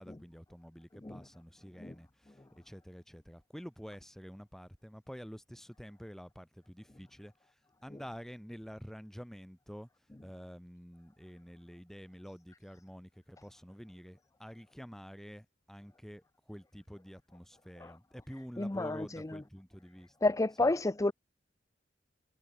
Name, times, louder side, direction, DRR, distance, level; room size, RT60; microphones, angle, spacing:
voice 1, 0.0-7.6 7.8-9.9 10.2-20.1 20.6-20.7, equal, ahead, 7.5 m, -49 dB
voice 2, 18.6-19.0 20.2-21.1, left 2 dB, 20° left, 0.6 m, -28 dB
head